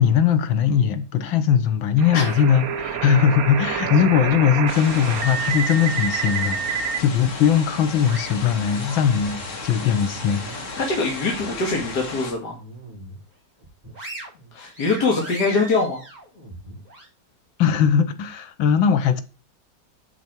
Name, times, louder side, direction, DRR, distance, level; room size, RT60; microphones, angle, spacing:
voice 1, 0.0-10.6 17.6-19.2, left 8 dB, 85° left, 1.9 m, -20 dB
sound 1, 2.0-7.0, right 7 dB, 55° right, 1.3 m, -27 dB
sound 2, 4.7-12.3, left 3 dB, 40° left, 2.2 m, -34 dB
sound 3, 7.5-9.5 10.0-11.4 11.8-11.9 12.4-13.2 13.6-17.1, right 1 dB, 20° right, 6.3 m, -40 dB
voice 2, 10.8-12.6 14.5-16.0, left 3 dB, 60° left, 2.6 m, -23 dB
9.3 x 6.9 x 4.5 m
omnidirectional pair, 2.1 m